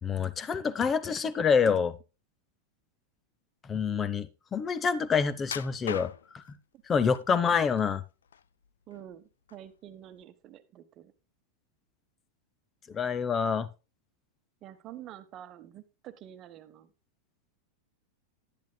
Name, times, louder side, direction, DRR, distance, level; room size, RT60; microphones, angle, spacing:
voice 1, 0.0-1.9 3.6-6.4 6.9-8.0 12.9-13.7, left 6 dB, 20° left, 16 dB, 0.7 m, -27 dB
sound 1, 5.4-6.5 7.1-7.8 8.2-9.1 9.5-9.7 10.2-10.3, left 7 dB, 65° left, 0.4 m, -39 dB
voice 2, 8.9-11.1 14.6-16.9, right 11 dB, 35° right, 10 dB, 1.1 m, -48 dB
10.5 x 10.5 x 2.2 m, 0.30 s
figure-of-eight pair, 90°, 0 cm